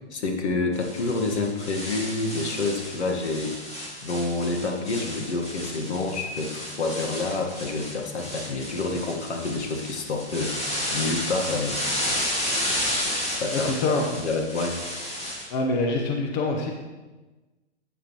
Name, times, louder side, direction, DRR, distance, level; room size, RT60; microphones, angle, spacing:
voice 1, 0.1-3.5 4.0-10.5 10.9-11.8 13.4-14.8, left 3 dB, 75° left, 3 dB, 1.7 m, -28 dB
sound 1, 0.7-15.5, left 1 dB, 20° left, 2.2 m, -32 dB
voice 2, 13.5-14.1 15.5-16.7, left 2 dB, 40° left, 2 dB, 1.0 m, -25 dB
10.0 x 8.0 x 3.1 m, 1.2 s
hypercardioid pair, 135°, 34 cm